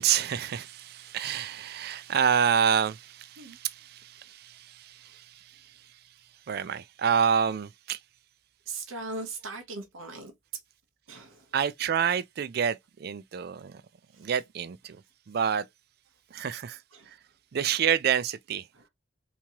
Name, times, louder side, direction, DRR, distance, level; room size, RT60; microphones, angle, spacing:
voice 1, 0.0-6.0 6.5-8.0 11.5-13.8 14.2-15.7 16.3-17.2 17.5-18.7, right 8 dB, 50° right, 0.3 m, -28 dB
voice 2, 8.7-10.3 11.1-11.5 14.1-14.3 16.9-17.1 18.7-18.8, right 3 dB, 85° right, 0.9 m, -39 dB
3.5 x 2.9 x 2.9 m
head